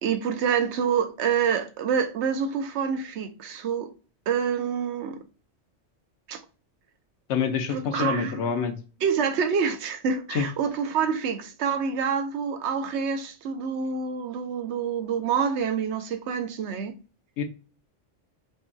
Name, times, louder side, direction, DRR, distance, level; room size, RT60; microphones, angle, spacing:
voice 1, 0.0-3.9 4.3-5.2 6.3-6.4 7.7-8.4 9.0-16.9, right 6 dB, 70° right, 1.0 m, -27 dB
voice 2, 7.3-8.7 10.3-10.5 17.4-17.5, left 7 dB, 70° left, 1.0 m, -26 dB
5.4 x 2.2 x 2.6 m
omnidirectional pair, 1.2 m